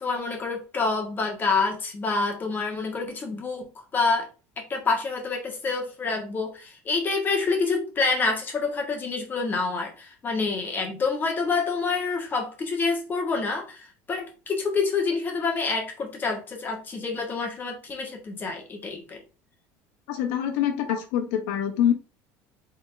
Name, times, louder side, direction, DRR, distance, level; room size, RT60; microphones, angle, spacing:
voice 1, 0.0-4.3 4.6-19.2, left 4 dB, 30° left, 1 dB, 1.7 m, -27 dB
voice 2, 20.1-21.9, left 9 dB, 80° left, 5 dB, 1.2 m, -25 dB
4.0 x 3.9 x 3.4 m, 0.33 s
supercardioid pair, 120°, 7 cm